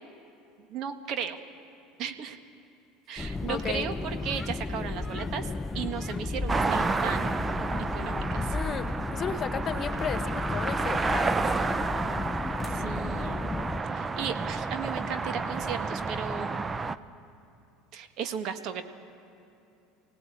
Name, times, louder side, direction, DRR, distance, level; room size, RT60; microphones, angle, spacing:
voice 1, 0.7-1.4 2.0-2.4 3.1-7.3 7.9-8.5 12.6-13.5 13.8-16.6 17.9-18.8, right 7 dB, 55° right, 7 dB, 1.7 m, -35 dB
sound 1, 3.2-13.8, left 3 dB, 15° left, 0.5 m, -34 dB
voice 2, 3.5-3.9 8.5-11.4, left 7 dB, 40° left, 9 dB, 1.7 m, -34 dB
sound 2, 6.5-17.0, right 4 dB, 20° right, 0.8 m, -31 dB
24.0 x 17.5 x 8.7 m, 2.7 s
hypercardioid pair, 75°, 0 cm